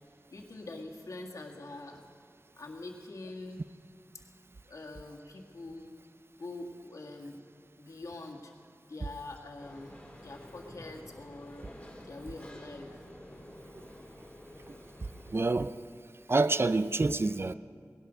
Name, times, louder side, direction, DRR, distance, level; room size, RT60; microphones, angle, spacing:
voice 1, 0.3-2.0 2.6-3.6 4.7-5.9 6.4-7.4 7.8-8.5 8.9-9.9 10.2-11.7 12.0-13.0, left 2 dB, 70° left, 1.9 m, -44 dB
sound 1, 9.6-15.3, left 1 dB, 20° left, 3.6 m, -50 dB
voice 2, 15.3-15.7 16.3-17.5, right 3 dB, 45° right, 0.5 m, -27 dB
18.5 x 11.5 x 6.3 m
cardioid pair, 45°, 6 cm